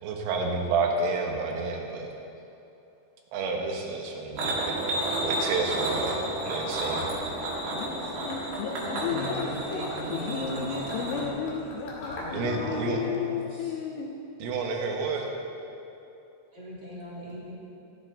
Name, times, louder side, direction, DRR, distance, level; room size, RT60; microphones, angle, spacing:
voice 1, 0.0-2.1 3.3-7.1 12.3-13.0 14.4-15.3, right 3 dB, 80° right, 1 dB, 3.9 m, -30 dB
sound 1, 4.4-11.3, right 1 dB, 60° right, 3.8 m, -31 dB
Gurgling / Liquid, 6.7-12.5, left 2 dB, 50° left, 3.6 m, -45 dB
voice 2, 7.7-14.2, left 6 dB, 80° left, 2 dB, 2.9 m, -34 dB
voice 3, 8.8-11.3 12.1-13.8 16.5-17.6, equal, 30° right, -8 dB, 2.2 m, -39 dB
14.0 x 14.0 x 4.0 m, 2.8 s
omnidirectional pair, 5.8 m